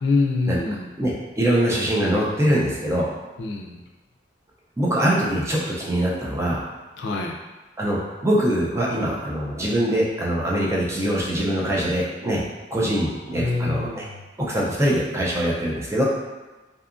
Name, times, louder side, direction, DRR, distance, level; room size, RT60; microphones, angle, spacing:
voice 1, 0.0-0.9 3.4-3.8 7.0-7.4 13.4-14.1, left 3 dB, 70° left, 1 dB, 0.4 m, -25 dB
voice 2, 1.0-3.1 4.8-6.6 7.8-12.4 12.7-14.0 14.4-16.0, right 1 dB, 15° right, -4 dB, 0.4 m, -23 dB
2.7 x 2.3 x 2.4 m, 1.2 s
head